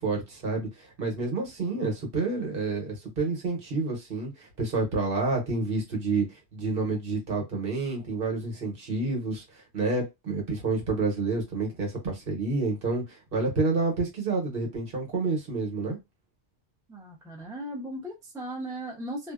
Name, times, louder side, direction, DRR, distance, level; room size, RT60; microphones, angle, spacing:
voice 1, 0.0-16.0, right 3 dB, 55° right, 1.1 m, -29 dB
voice 2, 16.9-19.3, right 1 dB, 5° right, 0.5 m, -37 dB
2.5 x 2.1 x 2.3 m
omnidirectional pair, 1.2 m